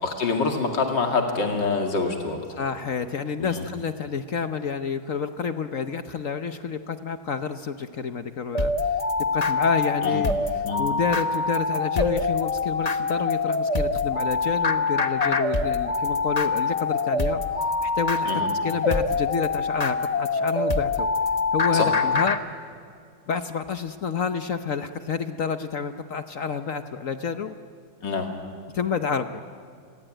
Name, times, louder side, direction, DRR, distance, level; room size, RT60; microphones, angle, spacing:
voice 1, 0.0-2.6 3.4-3.7 10.0-10.2 10.6-10.8 18.3-18.5 21.7-21.9 28.0-28.3, left 4 dB, 80° left, 3 dB, 3.1 m, -26 dB
voice 2, 2.6-9.0 9.3-17.4 17.8-18.3 18.6-21.1 21.5-22.4 23.3-27.6 28.7-29.4, left 6 dB, 55° left, 9 dB, 1.1 m, -29 dB
sound 1, 8.5-22.4, left 3 dB, 25° left, 1.0 m, -25 dB
29.5 x 22.0 x 9.0 m, 2.3 s
omnidirectional pair, 1.9 m